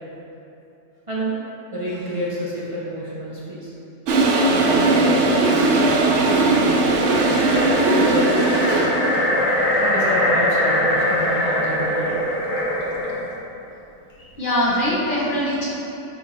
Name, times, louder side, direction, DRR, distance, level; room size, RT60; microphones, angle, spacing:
voice 1, 1.7-3.7 4.5-8.9 9.8-12.2, right 1 dB, 25° right, -8 dB, 1.1 m, -29 dB
Toilet flush, 4.1-9.3, right 2 dB, 70° right, 1.0 m, -18 dB
sound 1, 7.0-13.3, left 1 dB, 80° left, 1.5 m, -22 dB
voice 2, 14.2-15.7, equal, 40° left, -7 dB, 1.3 m, -22 dB
9.5 x 3.7 x 4.3 m, 2.8 s
omnidirectional pair, 1.3 m